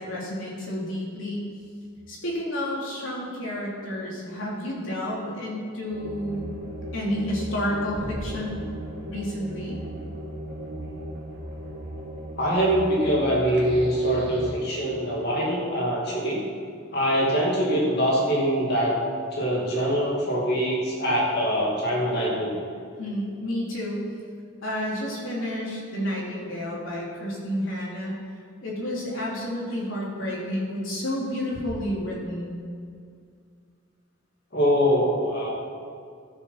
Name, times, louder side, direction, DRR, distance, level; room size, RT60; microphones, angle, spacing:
voice 1, 0.0-1.5 2.1-6.5 6.9-8.7 9.1-9.8 23.0-24.1 24.6-28.2 28.6-32.5, equal, 80° left, -5 dB, 3.0 m, -30 dB
sound 1, 5.9-14.5, right 1 dB, 55° right, 2.0 m, -37 dB
voice 2, 12.4-16.5 16.9-19.0 19.3-22.6 34.5-35.5, equal, 55° left, -4 dB, 2.5 m, -23 dB
13.0 x 6.8 x 5.8 m, 2.3 s
head